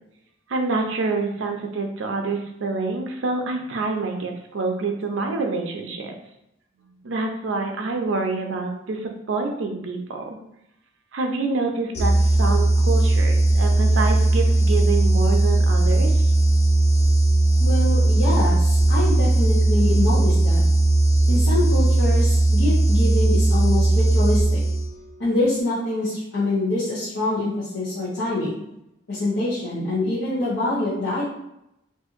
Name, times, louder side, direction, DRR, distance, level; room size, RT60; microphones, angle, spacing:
voice 1, 0.5-6.1 7.0-10.4 11.1-16.1, right 3 dB, 75° right, 3 dB, 0.5 m, -27 dB
sound 1, 12.0-25.1, right 2 dB, 35° left, 0.4 m, -18 dB
voice 2, 17.6-20.6 21.3-24.6 25.2-28.6 29.1-31.2, left 2 dB, 80° left, -11 dB, 0.9 m, -25 dB
2.7 x 2.5 x 2.5 m, 0.82 s
head